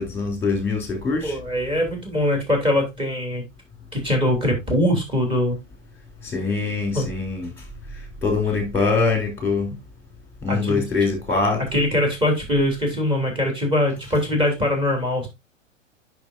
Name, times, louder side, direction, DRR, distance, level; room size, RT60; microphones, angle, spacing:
voice 1, 0.0-1.4 6.2-9.8 10.4-11.6, left 4 dB, 5° left, 3.3 m, -24 dB
voice 2, 1.2-3.4 3.9-5.6 6.9-7.1 10.5-10.8 11.7-15.3, left 1 dB, 15° right, 3.0 m, -22 dB
8.6 x 6.0 x 2.7 m
figure-of-eight pair, 110°, 39 cm